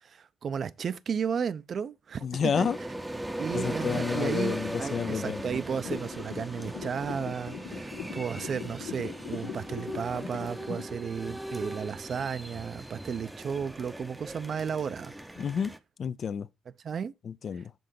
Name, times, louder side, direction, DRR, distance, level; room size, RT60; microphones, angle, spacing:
voice 1, 0.0-2.7 3.4-15.1 16.8-17.1, right 7 dB, 50° right, 0.5 m, -34 dB
voice 2, 2.2-2.8 3.5-5.6 15.4-15.7 16.0-16.5 17.2-17.7, left 7 dB, 50° left, 0.4 m, -30 dB
sound 1, 2.5-15.8, right 1 dB, 10° right, 0.7 m, -39 dB
sound 2, 5.8-10.8, left 7 dB, 90° left, 1.7 m, -41 dB
7.8 x 3.8 x 5.2 m
cardioid pair, 115°, 0 cm